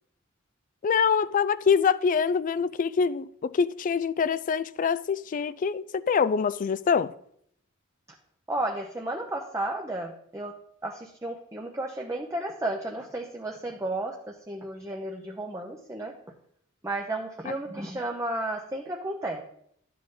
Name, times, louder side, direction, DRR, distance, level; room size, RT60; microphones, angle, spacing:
voice 1, 0.8-7.1 17.5-17.6, left 6 dB, 40° left, 0.3 m, -25 dB
voice 2, 8.5-10.5 10.8-16.1 16.8-19.4, right 1 dB, 15° right, 0.7 m, -33 dB
12.0 x 7.7 x 3.7 m
head